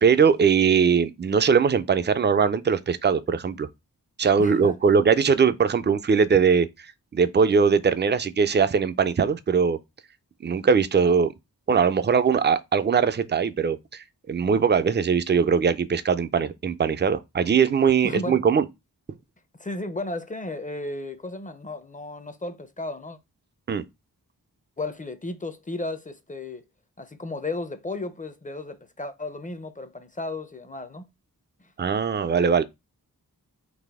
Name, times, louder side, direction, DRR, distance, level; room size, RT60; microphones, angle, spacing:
voice 1, 0.0-3.7 4.2-6.7 7.1-9.8 10.4-11.3 11.7-13.8 14.3-18.6 23.7-23.8 31.8-32.6, right 6 dB, 30° right, 0.4 m, -21 dB
voice 2, 4.4-4.7 18.0-18.4 19.6-23.2 24.8-26.6 27.0-31.0 31.6-31.7, left 2 dB, 20° left, 0.5 m, -34 dB
4.1 x 2.6 x 3.4 m
wide cardioid pair, 50°, 37 cm